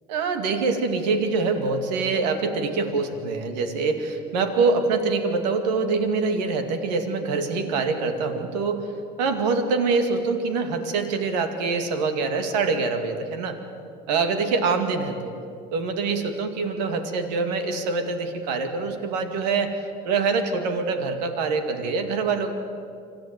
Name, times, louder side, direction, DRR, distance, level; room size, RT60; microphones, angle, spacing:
voice 1, 0.1-8.9 9.2-13.6 14.1-15.3 15.7-19.7 20.0-22.5, right 4 dB, 85° right, 6 dB, 2.3 m, -25 dB
25.5 x 14.5 x 9.1 m, 2.4 s
supercardioid pair, 80°, 21 cm